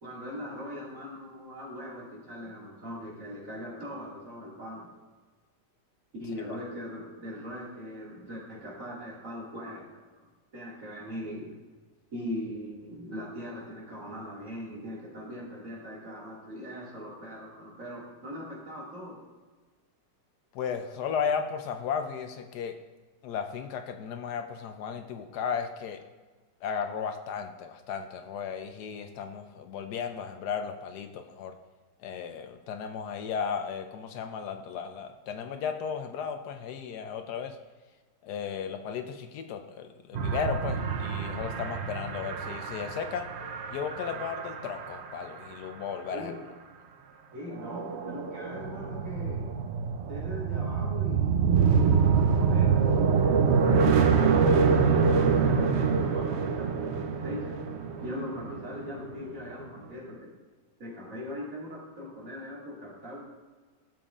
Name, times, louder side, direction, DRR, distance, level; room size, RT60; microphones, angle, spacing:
voice 1, 0.0-4.9 6.2-9.8 10.5-11.5 12.1-19.2 46.1-46.4 47.3-49.6 50.0-51.5 51.7-52.9 53.5-57.6 58.0-60.4 60.8-63.2, left 1 dB, 45° right, -5 dB, 2.5 m, -40 dB
voice 2, 20.5-22.8 23.2-26.0 26.6-31.5 32.0-37.6 38.2-43.3 43.7-46.3, left 6 dB, 75° left, 7 dB, 1.1 m, -35 dB
sound 1, 40.1-45.0 47.6-59.1, right 5 dB, 90° right, 0.5 m, -26 dB
12.5 x 7.0 x 2.4 m, 1.3 s
omnidirectional pair, 1.9 m